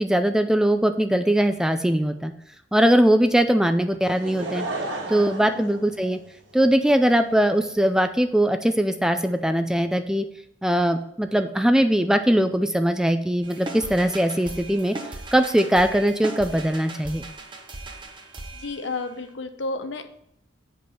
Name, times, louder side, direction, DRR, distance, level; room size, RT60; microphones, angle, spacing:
voice 1, 0.0-2.3 2.7-4.6 5.1-6.2 6.5-10.2 10.6-15.0 15.3-17.2, right 1 dB, 5° right, 8 dB, 0.3 m, -21 dB
Laughter / Crowd, 4.0-6.7 7.4-7.5, right 2 dB, 80° right, 1.8 m, -33 dB
sound 1, 13.4-19.3, right 2 dB, 25° right, 0.9 m, -38 dB
voice 2, 18.5-20.0, left 3 dB, 75° left, 7 dB, 0.9 m, -32 dB
8.7 x 5.2 x 5.7 m, 0.75 s
head